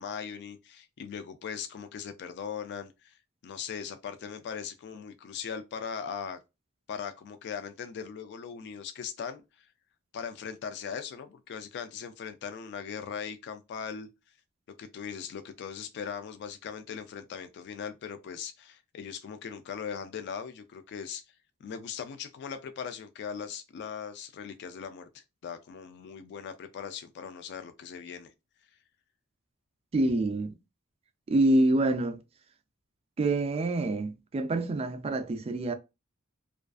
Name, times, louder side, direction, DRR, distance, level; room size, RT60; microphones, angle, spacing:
voice 1, 0.0-6.4 6.9-9.7 10.1-14.1 14.8-21.2 21.6-28.3, left 7 dB, 50° left, 0.3 m, -39 dB
voice 2, 29.9-30.6 31.3-32.2 33.2-35.7, right 2 dB, 30° right, 0.3 m, -26 dB
2.4 x 2.3 x 2.3 m
head